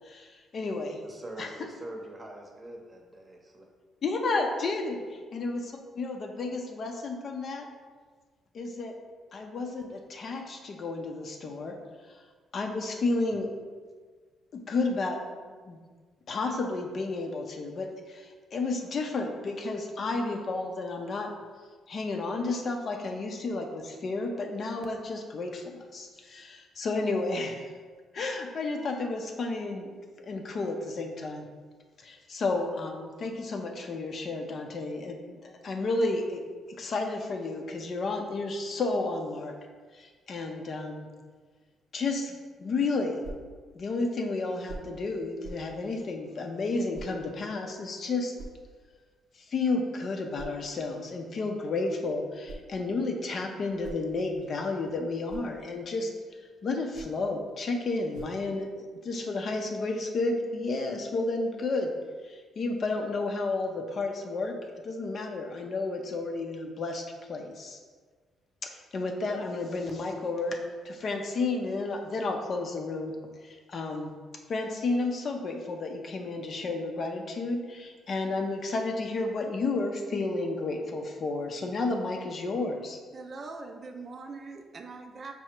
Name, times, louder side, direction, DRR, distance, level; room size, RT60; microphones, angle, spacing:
voice 1, 0.0-1.0 1.4-1.5 4.0-7.7 8.5-8.9 9.3-11.7 12.5-13.5 14.5-15.2 15.4-15.8 16.3-21.3 21.9-27.6 28.1-31.5 32.0-36.4 36.8-39.5 39.9-41.1 41.9-43.2 43.7-48.3 49.5-56.1 56.6-58.7 59.0-61.9 62.2-64.5 64.8-67.0 67.3-67.8 68.6-70.6 70.8-73.1 73.4-74.1 74.5-83.0, left 3 dB, 50° left, 3 dB, 0.5 m, -32 dB
voice 2, 1.0-3.7 4.9-5.1, right 1 dB, 25° right, 1 dB, 0.7 m, -44 dB
sound 1, 43.2-43.5 44.7-45.0 45.4-45.7 46.9-47.2 48.4-48.7 50.4-50.6 52.2-52.8 53.6-54.5 55.0-55.6 56.8-57.3 58.1-58.5, right 2 dB, 85° right, 0.6 m, -45 dB
voice 3, 83.1-85.3, right 3 dB, 45° right, 4 dB, 0.3 m, -42 dB
4.7 x 2.0 x 4.3 m, 1.5 s
cardioid pair, 90°, 0 cm